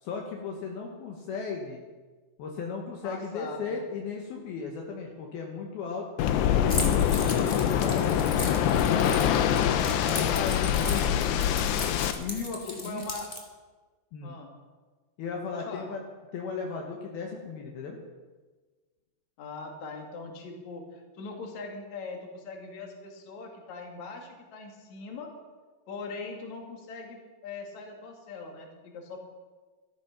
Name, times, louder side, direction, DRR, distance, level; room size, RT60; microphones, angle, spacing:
voice 1, 0.0-1.8 2.4-6.1 6.4-9.2 10.0-11.7 12.2-13.0 14.1-14.4 15.2-16.0 16.3-18.0, left 5 dB, 70° left, 0 dB, 3.1 m, -36 dB
voice 2, 3.0-3.9 9.9-10.5 12.6-13.3 14.2-14.5 15.5-15.9 19.4-25.3 25.9-29.2, left 3 dB, 50° left, 2 dB, 3.1 m, -41 dB
Waves surf, 6.2-12.1, left 9 dB, 90° left, 3.1 m, -24 dB
Keys jangling, 6.7-13.4, left 1 dB, 25° left, 1.0 m, -38 dB
13.5 x 13.5 x 6.0 m, 1.3 s
omnidirectional pair, 4.8 m